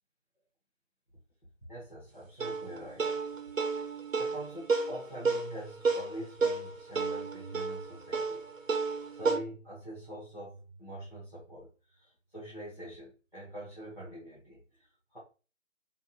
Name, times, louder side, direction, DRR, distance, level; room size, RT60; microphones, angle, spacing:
voice 1, 1.7-3.1 4.2-15.2, right 1 dB, 40° left, -7 dB, 0.8 m, -45 dB
sound 1, 2.4-9.4, right 4 dB, 85° right, 0.7 m, -32 dB
2.5 x 2.4 x 2.5 m, 0.35 s
figure-of-eight pair, 180°, 38 cm